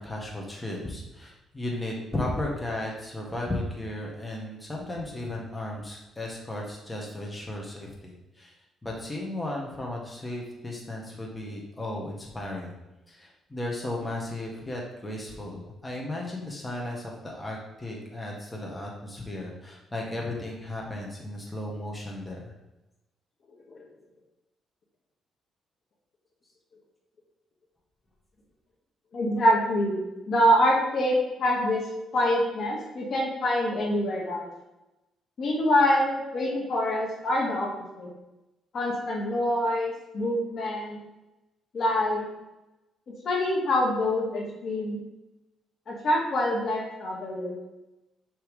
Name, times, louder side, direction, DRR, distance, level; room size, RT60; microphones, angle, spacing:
voice 1, 0.0-8.5 8.8-12.8 13.1-22.5, left 1 dB, 15° left, -2 dB, 1.5 m, -35 dB
voice 2, 29.1-30.0 30.3-31.8 32.1-34.5 35.4-37.7 38.0-38.1 38.7-41.0 41.7-42.3 43.2-45.0 45.9-47.6, left 1 dB, 55° left, -1 dB, 1.6 m, -25 dB
6.6 x 3.4 x 4.9 m, 0.99 s
cardioid pair, 90°, 0 cm